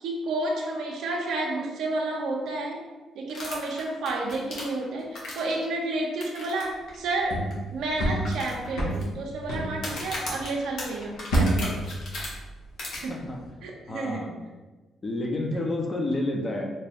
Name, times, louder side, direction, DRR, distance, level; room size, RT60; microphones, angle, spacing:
voice 1, 0.0-2.8 3.1-7.4 7.7-11.9 13.0-13.1 13.6-14.2, right 2 dB, 80° right, 0 dB, 0.6 m, -31 dB
sound 1, 3.3-5.6 6.2-6.6 6.9-7.0 7.5-7.6 8.2-9.0 9.7-12.3 12.8-13.0, left 2 dB, 70° left, 1.2 m, -36 dB
sound 2, 6.9-10.6 10.9-12.9 13.2-13.5, right 1 dB, 85° left, 1.0 m, -29 dB
voice 2, 13.1-13.4 13.9-14.4 15.0-16.7, left 1 dB, 30° left, 2 dB, 0.6 m, -29 dB
3.1 x 2.3 x 4.1 m, 1.2 s
cardioid pair, 90°, 0 cm